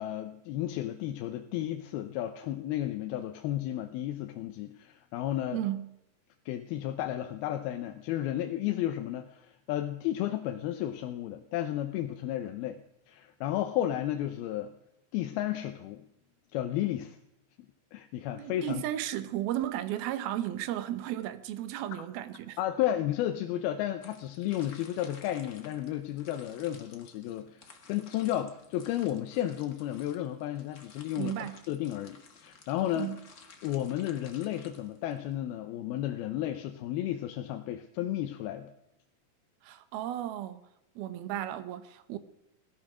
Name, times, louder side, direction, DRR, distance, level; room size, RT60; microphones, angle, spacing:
voice 1, 0.0-5.6 6.5-12.8 13.1-14.7 15.1-16.0 16.5-17.2 17.9-18.8 22.6-33.1 33.6-38.7, left 12 dB, 85° left, 2.7 m, -33 dB
voice 2, 5.5-5.9 18.3-22.6 31.2-31.6 33.0-33.2 39.6-40.6 41.0-42.2, right 12 dB, 80° right, 2.8 m, -34 dB
sound 1, 24.0-35.4, left 4 dB, 55° left, 1.0 m, -55 dB
18.0 x 12.5 x 6.2 m
omnidirectional pair, 4.4 m